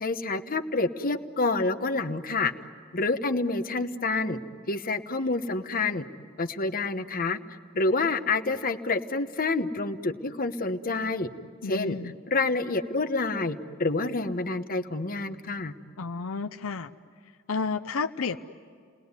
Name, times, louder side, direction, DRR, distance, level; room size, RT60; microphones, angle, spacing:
voice 1, 0.0-2.5 2.9-4.4 4.7-6.1 6.4-7.4 7.7-11.3 11.6-12.0 12.3-15.7, left 3 dB, 45° left, 8 dB, 1.1 m, -28 dB
voice 2, 11.6-12.1 16.0-16.9 17.5-18.4, left 4 dB, 80° left, 8 dB, 0.7 m, -31 dB
30.0 x 20.5 x 9.7 m, 2.2 s
head